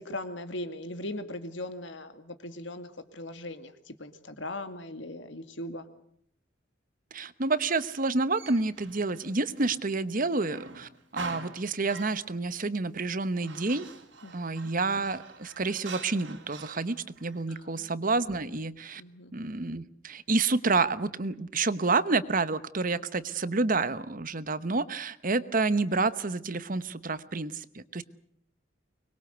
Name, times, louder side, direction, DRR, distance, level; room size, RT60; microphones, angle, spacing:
voice 1, 0.0-5.9 14.2-14.7 17.5-17.9 19.0-19.3, left 1 dB, 65° left, 9 dB, 2.3 m, -39 dB
voice 2, 7.1-13.9 14.3-19.0 19.3-28.0, right 3 dB, 45° right, 14 dB, 1.0 m, -29 dB
Male speech man speaking, 7.6-10.0 10.4-12.4 13.0-17.4, right 4 dB, 70° right, 3.6 m, -45 dB
24.5 x 22.0 x 8.1 m, 0.65 s
head